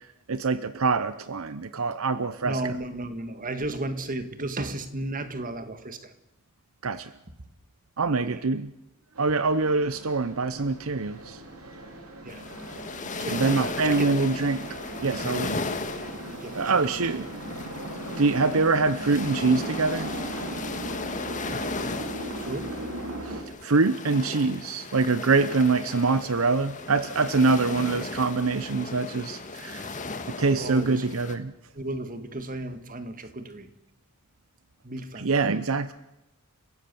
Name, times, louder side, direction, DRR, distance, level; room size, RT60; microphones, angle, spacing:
voice 1, 0.3-2.7 6.8-7.1 8.0-8.7 9.2-11.4 13.3-14.6 15.0-15.6 16.5-17.2 18.2-20.1 23.3-29.9 30.4-31.5 35.2-35.9, right 4 dB, 70° right, 13 dB, 0.8 m, -24 dB
voice 2, 2.4-6.1 8.3-8.4 12.2-12.4 13.2-13.5 13.9-14.2 16.4-16.7 17.1-17.3 22.4-22.7 30.6-31.0 31.7-33.7 34.8-35.4, right 2 dB, 40° right, 9 dB, 1.8 m, -34 dB
sound 1, 9.1-23.4, right 1 dB, 90° right, 3.2 m, -38 dB
sound 2, 12.3-31.4, left 3 dB, 35° left, 1.7 m, -36 dB
30.0 x 16.0 x 7.0 m, 0.92 s
head